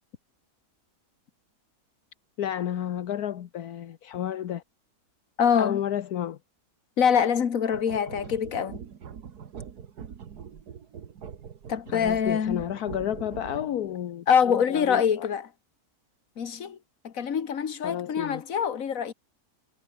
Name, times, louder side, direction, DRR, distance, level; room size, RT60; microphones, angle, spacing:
voice 1, 2.4-4.6 5.6-6.4 11.9-14.3 14.7-15.3 17.8-18.4, left 10 dB, 75° left, 1.4 m, -31 dB
voice 2, 5.4-5.8 7.0-8.8 11.7-12.6 14.3-15.5 16.4-16.8 17.0-19.1, left 7 dB, 60° left, 1.8 m, -24 dB
sound 1, 7.7-13.9, right 7 dB, 90° right, 2.0 m, -43 dB
omnidirectional pair, 1.6 m